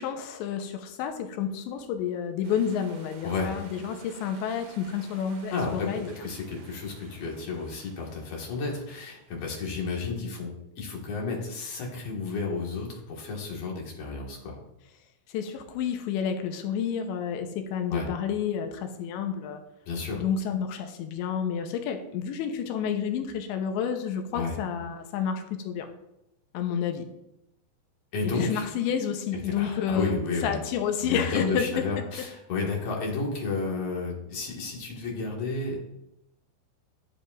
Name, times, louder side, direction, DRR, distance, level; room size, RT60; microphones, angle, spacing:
voice 1, 0.0-6.2 15.3-19.6 20.1-25.9 26.5-27.1 28.4-31.8, left 7 dB, 80° left, 5 dB, 2.8 m, -30 dB
sound 1, 2.4-9.6, right 4 dB, 65° right, 3.6 m, -53 dB
voice 2, 3.2-3.6 5.5-14.6 17.9-18.1 19.9-20.2 24.3-24.5 28.1-28.7 29.6-30.6 31.0-35.8, left 4 dB, 55° left, -2 dB, 1.8 m, -32 dB
10.0 x 9.9 x 2.5 m, 0.86 s
omnidirectional pair, 5.6 m